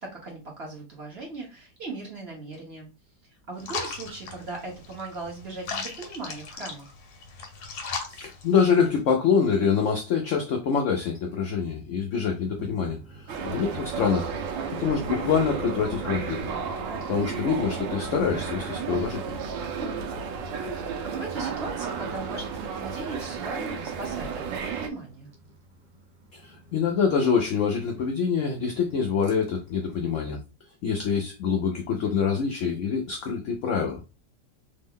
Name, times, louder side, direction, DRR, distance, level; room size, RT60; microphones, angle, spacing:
voice 1, 0.0-2.9 3.2-6.9 13.3-13.6 19.7-20.1 20.6-25.3, right 3 dB, 40° right, -2 dB, 1.1 m, -38 dB
sound 1, 3.6-9.0, left 5 dB, 65° left, 1.2 m, -37 dB
voice 2, 8.1-14.5 14.8-16.4 17.1-19.4 26.3-30.4 30.8-34.0, left 6 dB, 80° left, 2 dB, 0.6 m, -25 dB
sound 2, 12.4-30.4, right 1 dB, 60° right, 0.4 m, -47 dB
sound 3, 13.3-24.9, right 6 dB, 85° right, 1.3 m, -33 dB
3.4 x 2.1 x 3.6 m, 0.29 s
omnidirectional pair, 1.9 m